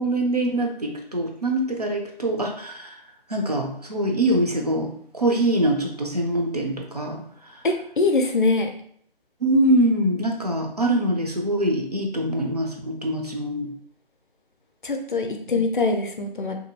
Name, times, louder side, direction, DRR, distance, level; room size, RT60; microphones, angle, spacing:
voice 1, 0.0-3.0 3.3-7.2 7.5-7.6 9.4-13.7, right 1 dB, 45° right, 1 dB, 0.4 m, -24 dB
voice 2, 7.6-8.7 14.8-16.5, left 3 dB, 55° left, 4 dB, 0.5 m, -23 dB
2.7 x 2.3 x 2.6 m, 0.63 s
figure-of-eight pair, 160°, 30 cm